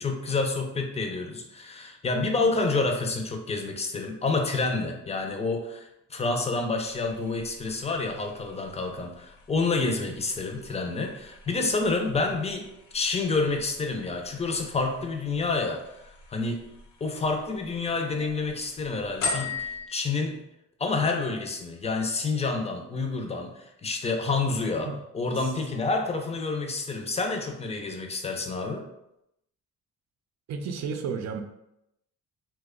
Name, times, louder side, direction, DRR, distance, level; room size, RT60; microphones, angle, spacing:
voice 1, 0.0-15.8 16.3-16.7 17.0-20.4 20.8-24.9 25.1-28.9, left 3 dB, 20° left, 3 dB, 0.5 m, -28 dB
sound 1, 6.8-19.9, left 4 dB, 85° left, 0.7 m, -41 dB
voice 2, 30.5-31.4, right 5 dB, 60° right, 6 dB, 0.5 m, -32 dB
2.9 x 2.2 x 3.6 m, 0.84 s
cardioid pair, 90°, 30 cm